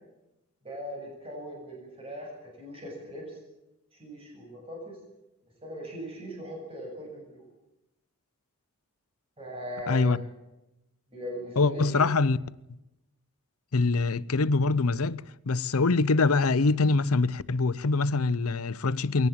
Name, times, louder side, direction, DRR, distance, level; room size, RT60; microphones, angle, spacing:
voice 1, 0.6-3.4 3.9-5.0 5.6-7.5 9.4-10.3 11.1-12.1, equal, 25° right, 7.4 m, -39 dB
voice 2, 9.9-10.2 11.6-12.4 13.7-19.3, left 3 dB, 75° left, 0.7 m, -24 dB
22.5 x 18.0 x 8.7 m
head